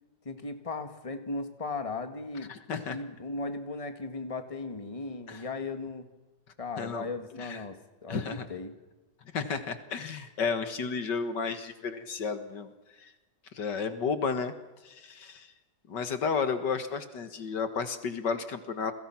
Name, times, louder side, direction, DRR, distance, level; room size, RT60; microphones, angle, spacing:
voice 1, 0.3-2.5 2.9-6.1 6.6-8.7, left 3 dB, 20° left, 7 dB, 1.9 m, -37 dB
voice 2, 2.5-3.0 5.3-5.4 6.8-7.1 7.4-7.6 8.1-8.5 9.3-12.7 13.0-13.1 13.5-14.5 14.8-15.5 15.9-18.9, left 5 dB, 75° left, 9 dB, 2.2 m, -32 dB
29.5 x 22.0 x 6.0 m, 1.1 s
omnidirectional pair, 1.9 m